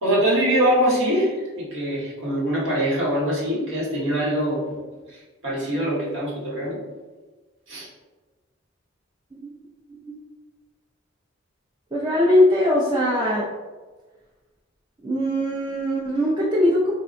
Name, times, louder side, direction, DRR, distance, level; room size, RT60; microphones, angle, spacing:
voice 1, 0.0-4.6 5.1-6.8 7.7-7.9, equal, 75° right, -7 dB, 1.4 m, -23 dB
voice 2, 11.9-13.5 15.0-16.9, left 1 dB, 25° right, -6 dB, 0.5 m, -21 dB
4.5 x 2.3 x 2.6 m, 1.3 s
head